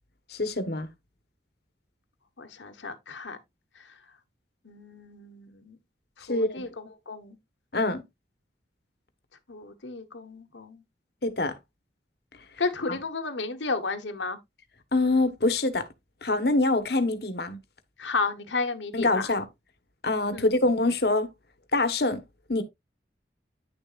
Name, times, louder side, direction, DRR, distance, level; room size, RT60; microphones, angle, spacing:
voice 1, 0.3-0.9 6.3-6.7 7.7-8.0 11.2-11.5 12.9-13.0 14.9-15.9 16.2-17.6 18.9-19.5 20.0-21.3 21.7-22.2 22.5-22.6, left 2 dB, 60° left, 1.3 m, -25 dB
voice 2, 2.4-3.4 4.6-5.8 6.3-7.4 9.5-10.8 12.6-14.4 18.0-19.3 20.3-20.5, left 3 dB, 85° left, 1.3 m, -33 dB
9.9 x 6.9 x 2.5 m
head